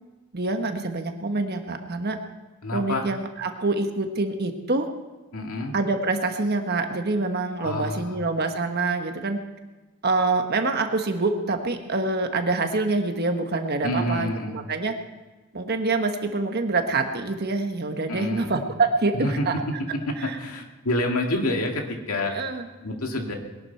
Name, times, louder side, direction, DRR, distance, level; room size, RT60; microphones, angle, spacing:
voice 1, 0.3-2.2 2.7-4.9 5.7-9.4 10.0-14.3 14.7-14.9 15.5-19.5 20.3-20.4 22.3-22.6, right 3 dB, 45° right, 6 dB, 1.3 m, -25 dB
voice 2, 2.6-3.1 5.3-5.7 7.6-8.2 13.8-14.6 18.1-18.5 19.1-19.5 19.9-22.4 22.8-23.3, left 1 dB, 80° left, 2 dB, 2.1 m, -28 dB
21.0 x 11.5 x 4.6 m, 1.2 s
head